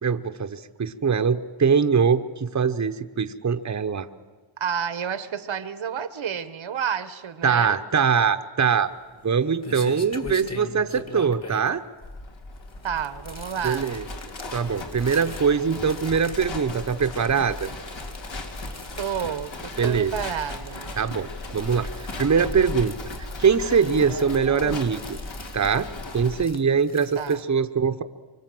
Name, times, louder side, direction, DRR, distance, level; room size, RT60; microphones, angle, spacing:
voice 1, 0.0-4.1 7.4-8.9 9.2-11.8 13.6-14.0 14.5-17.7 19.8-20.1 21.0-25.2 25.5-25.9 26.1-28.0, right 6 dB, 35° right, 1.0 m, -23 dB
voice 2, 4.6-7.8 12.8-14.0 19.0-21.0 27.1-27.4, right 8 dB, 75° right, 1.3 m, -30 dB
sound 1, 8.8-27.4, left 2 dB, 35° left, 2.3 m, -43 dB
Livestock farm animals working animals, 12.0-26.4, left 2 dB, 65° left, 3.0 m, -37 dB
25.0 x 24.5 x 7.8 m
wide cardioid pair, 105°, 48 cm